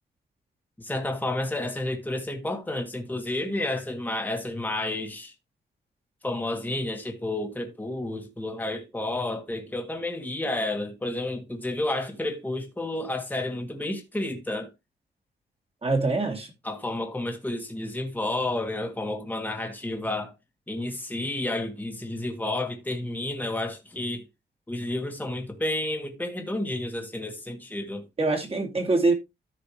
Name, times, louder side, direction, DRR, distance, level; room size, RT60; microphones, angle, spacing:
voice 1, 0.8-5.3 6.2-14.7 16.6-20.3 20.7-24.2 24.7-28.0, left 2 dB, 10° left, 1.7 m, -31 dB
voice 2, 15.8-16.5 28.2-29.1, right 3 dB, 30° right, 2.6 m, -24 dB
13.5 x 5.0 x 3.1 m
wide cardioid pair, 115°, 18 cm